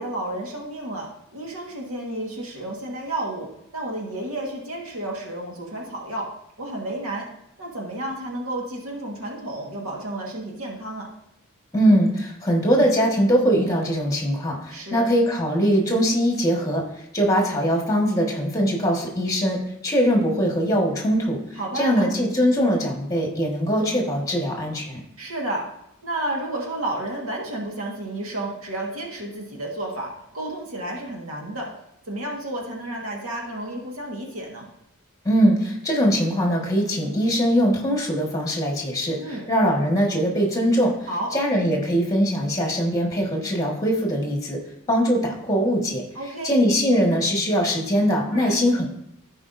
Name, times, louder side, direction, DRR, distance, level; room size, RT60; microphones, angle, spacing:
voice 1, 0.0-3.5 3.7-6.3 6.6-7.3 7.6-11.1 14.7-15.1 21.6-22.1 25.2-25.7 26.0-31.7 32.1-34.7 39.2-39.5 41.1-41.3 46.1-46.5 48.3-48.5, right 1 dB, 80° right, -1 dB, 1.5 m, -31 dB
voice 2, 11.7-16.8 17.1-21.4 21.7-25.0 35.2-40.9 41.3-44.6 44.9-46.0 46.4-48.8, equal, 15° left, 0 dB, 1.5 m, -21 dB
14.5 x 4.9 x 2.6 m, 0.79 s
head